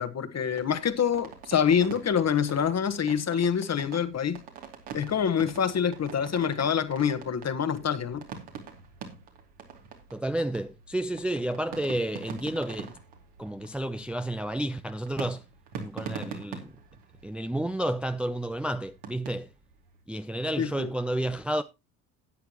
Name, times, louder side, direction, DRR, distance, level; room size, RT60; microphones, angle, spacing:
voice 1, 0.0-4.4 4.9-8.2 20.6-20.9, left 7 dB, 35° left, 1.4 m, -26 dB
sound 1, 0.6-20.0, right 6 dB, 65° right, 2.8 m, -45 dB
voice 2, 10.1-12.9 13.4-15.4 15.7-16.7 17.2-19.5 20.1-21.6, right 1 dB, ahead, 0.6 m, -31 dB
13.0 x 9.4 x 3.0 m
figure-of-eight pair, 50°, 44 cm